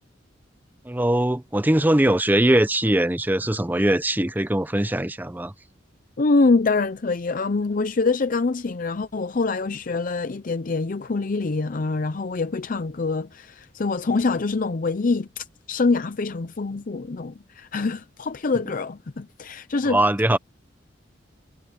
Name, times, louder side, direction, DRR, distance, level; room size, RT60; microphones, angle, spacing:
voice 1, 0.8-5.5 19.9-20.4, right 1 dB, 10° right, 0.7 m, -21 dB
voice 2, 6.2-20.0, left 3 dB, 45° left, 0.6 m, -25 dB
head